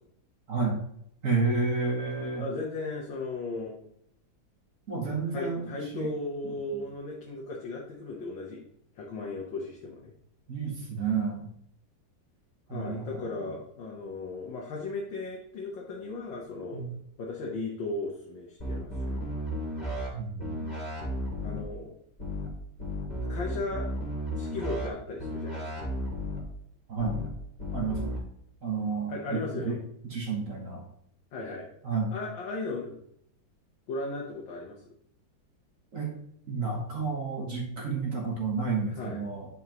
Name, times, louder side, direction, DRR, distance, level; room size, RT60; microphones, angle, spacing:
voice 1, 0.5-0.8 1.2-2.4 4.9-5.6 5.9-6.1 6.4-6.9 10.5-11.5 12.7-13.5 16.7-16.9 20.1-20.8 26.9-27.2 27.7-28.2 28.6-29.8 30.0-30.8 31.8-32.1 35.9-36.1 36.5-39.5, right 4 dB, 45° right, -1 dB, 1.6 m, -31 dB
voice 2, 2.4-3.8 5.3-8.7 9.0-10.1 12.7-16.8 17.2-19.4 21.4-21.9 23.3-23.9 24.3-25.8 29.1-29.8 31.3-31.7 32.1-33.0 33.9-34.8 39.0-39.2, left 3 dB, 75° left, -2 dB, 1.8 m, -36 dB
sound 1, 18.6-20.1 20.4-21.6 22.2-22.5 22.8-24.9 25.2-26.4 27.0-27.3 27.6-28.2, equal, 20° left, 2.6 m, -33 dB
9.6 x 5.4 x 3.0 m, 0.72 s
omnidirectional pair, 2.1 m